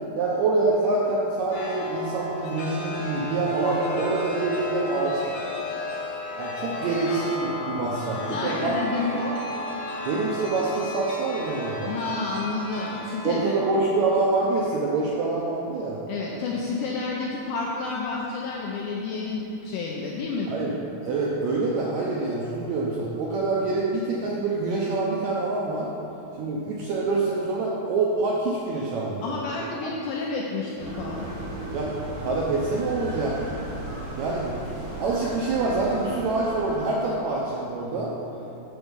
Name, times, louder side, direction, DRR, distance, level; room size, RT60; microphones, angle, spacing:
voice 1, 0.2-5.2 6.4-8.7 10.0-11.9 13.2-16.0 20.5-20.7 21.0-25.9 26.4-29.3 31.7-31.9 32.2-33.4 34.2-38.1, right 3 dB, 90° right, -4 dB, 1.6 m, -26 dB
Chime, 1.5-15.7, left 1 dB, 65° left, 2.5 m, -34 dB
voice 2, 8.3-9.3 11.9-13.6 16.1-20.5 29.2-31.2, left 3 dB, 80° left, -3 dB, 1.9 m, -30 dB
sound 1, 30.8-36.8, right 1 dB, 60° right, 3.2 m, -35 dB
7.0 x 6.3 x 5.1 m, 2.8 s
omnidirectional pair, 4.2 m